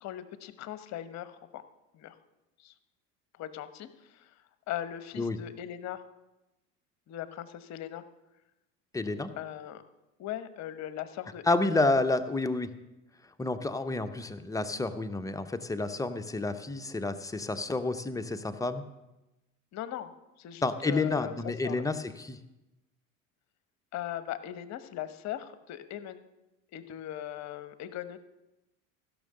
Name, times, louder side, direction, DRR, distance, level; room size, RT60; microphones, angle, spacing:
voice 1, 0.0-1.6 1.9-2.2 2.6-2.7 3.4-4.3 4.7-6.0 7.1-8.0 9.4-9.8 10.2-11.7 19.7-21.8 23.9-26.2 26.7-28.2, left 11 dB, 40° left, 12 dB, 1.0 m, -39 dB
voice 2, 8.9-9.3 11.5-12.7 13.4-18.8 20.6-22.4, left 2 dB, 10° left, 8 dB, 0.7 m, -30 dB
15.5 x 6.3 x 6.6 m, 0.98 s
figure-of-eight pair, 70°, 43 cm